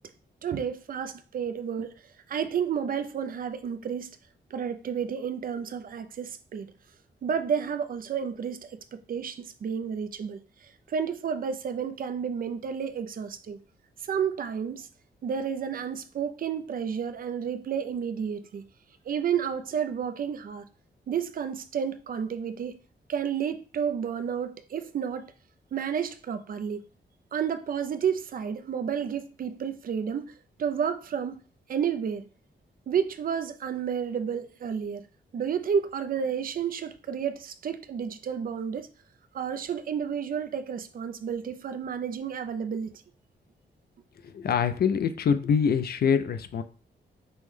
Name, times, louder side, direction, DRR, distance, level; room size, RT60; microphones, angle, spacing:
voice 1, 0.4-1.9 2.3-4.1 4.5-6.7 7.2-8.7 9.1-13.6 14.1-14.9 15.2-18.6 19.1-20.6 21.1-22.8 23.1-25.3 25.7-26.8 27.3-30.3 30.6-31.4 31.7-32.2 32.9-35.0 35.3-38.9 39.3-42.9, right 7 dB, 50° right, 0.4 m, -31 dB
voice 2, 44.2-46.6, left 7 dB, 55° left, 0.4 m, -25 dB
5.3 x 2.1 x 3.2 m
wide cardioid pair, 120°, 19 cm